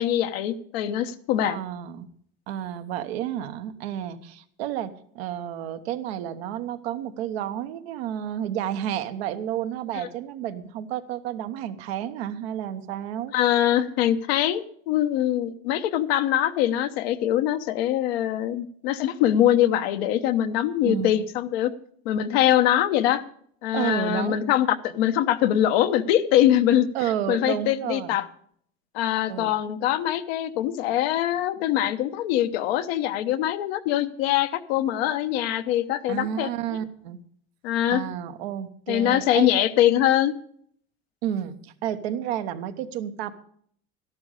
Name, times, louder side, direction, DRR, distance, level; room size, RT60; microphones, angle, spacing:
voice 1, 0.0-1.6 13.3-21.7 22.0-23.2 23.6-26.9 27.3-28.2 28.9-36.5 37.6-38.0 38.9-40.3, left 12 dB, 85° left, 9 dB, 1.0 m, -23 dB
voice 2, 1.4-2.1 2.5-13.3 20.8-21.2 23.7-24.4 26.9-28.2 29.3-29.5 36.1-37.2 37.9-39.5 41.2-43.3, right 10 dB, 85° right, 9 dB, 1.1 m, -31 dB
13.0 x 11.5 x 4.9 m, 0.63 s
supercardioid pair, 105°, 30 cm